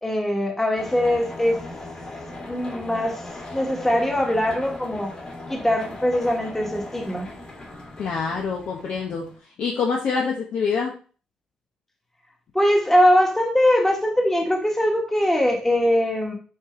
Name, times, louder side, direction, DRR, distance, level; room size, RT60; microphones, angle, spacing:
voice 1, 0.0-1.6 2.4-5.1 5.5-7.3 12.5-16.3, equal, 10° left, 1.5 m, -21 dB
sound 1, 0.7-9.4, left 2 dB, 35° left, 2.5 m, -38 dB
voice 2, 8.0-9.3 9.6-10.9, left 5 dB, 70° left, 1.2 m, -25 dB
6.3 x 4.9 x 3.2 m
cardioid pair, 85°, 3 cm